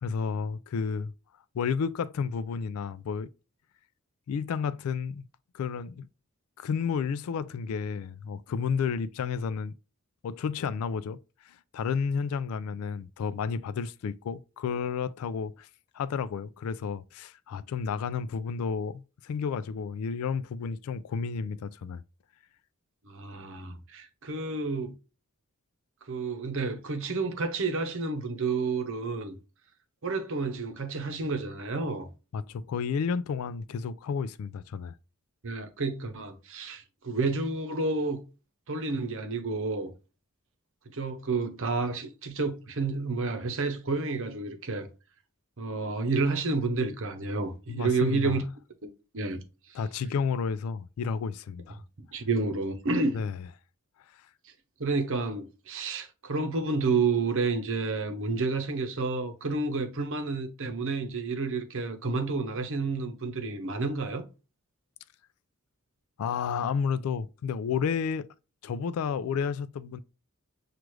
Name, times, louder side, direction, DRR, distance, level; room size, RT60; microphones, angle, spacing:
voice 1, 0.0-1.1 1.5-3.3 4.3-5.2 5.5-6.1 6.6-9.7 10.2-11.2 11.4-15.7 15.9-22.0 32.3-34.9 47.7-48.4 49.7-51.8 53.1-53.4 54.1-54.2 66.2-68.3 68.6-70.0, left 6 dB, 75° left, 0.3 m, -31 dB
voice 2, 23.0-24.9 26.1-29.4 30.0-32.1 35.4-38.2 38.7-39.9 40.9-44.9 45.6-48.4 48.8-49.4 52.0-53.2 54.4-54.5 54.8-64.2, right 3 dB, 65° right, 0.8 m, -30 dB
6.0 x 2.5 x 3.1 m
head